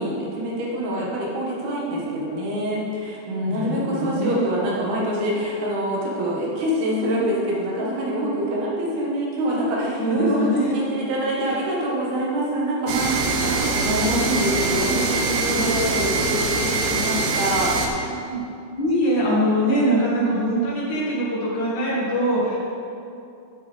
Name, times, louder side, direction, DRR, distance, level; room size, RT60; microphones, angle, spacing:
voice 1, 0.0-17.7, equal, 60° right, -4 dB, 3.1 m, -25 dB
voice 2, 3.5-4.4 10.0-10.8 15.5-15.9 18.3-18.4 18.7-22.6, equal, 50° left, -8 dB, 2.7 m, -23 dB
sound 1, 12.9-17.9, right 3 dB, 80° right, 3.2 m, -23 dB
13.0 x 7.2 x 3.5 m, 2.6 s
omnidirectional pair, 5.7 m